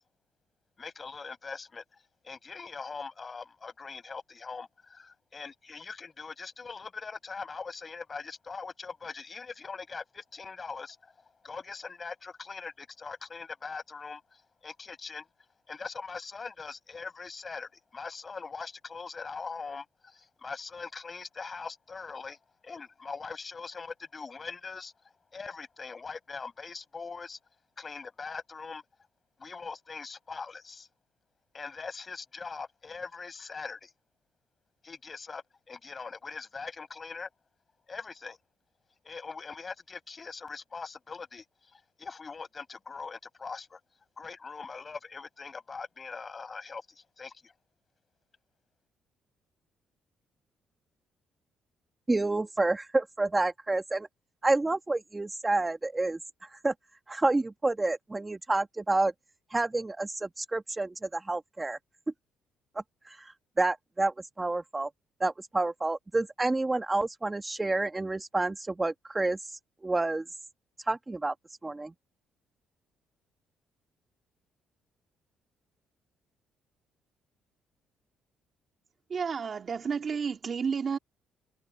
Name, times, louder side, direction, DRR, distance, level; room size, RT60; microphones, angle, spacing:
voice 1, 0.8-1.8 2.2-11.1 11.4-15.3 15.7-22.4 22.6-24.9 25.3-27.4 27.8-28.8 29.4-30.9 31.5-33.9 34.8-37.3 37.9-38.4 39.0-41.5 41.7-43.8 44.2-47.5, left 4 dB, 35° left, 7.2 m, -41 dB
voice 2, 52.1-54.1 54.4-56.7 57.1-59.1 59.5-61.8 63.0-64.9 65.2-70.2 70.8-71.3 71.6-71.9, right 2 dB, 20° right, 1.3 m, -29 dB
voice 3, 79.1-81.0, right 6 dB, 45° right, 2.8 m, -31 dB
cardioid pair, 85°, 0 cm